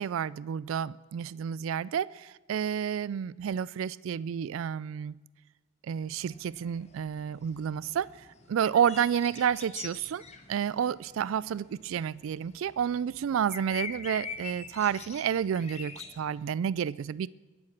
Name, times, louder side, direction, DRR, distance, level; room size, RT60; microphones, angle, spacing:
voice 1, 0.0-5.1 5.9-10.2 10.5-17.3, right 8 dB, 75° right, 0.3 m, -30 dB
sound 1, 5.9-16.5, left 5 dB, 35° left, 1.3 m, -45 dB
21.5 x 7.8 x 5.9 m
head